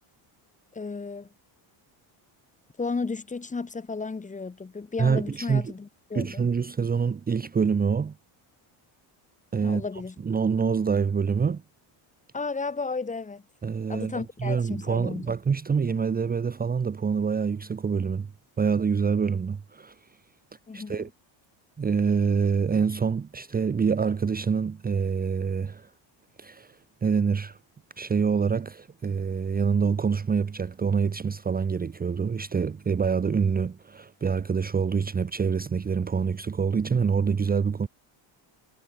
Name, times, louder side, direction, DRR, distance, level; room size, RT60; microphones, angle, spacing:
voice 1, 0.7-1.3 2.8-6.5 9.6-10.1 12.3-13.4 13.9-15.3 20.7-21.1, left 4 dB, 15° left, 2.7 m, -33 dB
voice 2, 5.0-5.7 6.1-8.1 9.5-9.8 10.2-11.6 13.6-18.3 18.6-19.9 20.7-21.1 21.8-25.9 26.4-26.8 27.0-27.6 28.0-37.9, right 6 dB, 20° right, 1.2 m, -26 dB
cardioid pair, 165°, 49 cm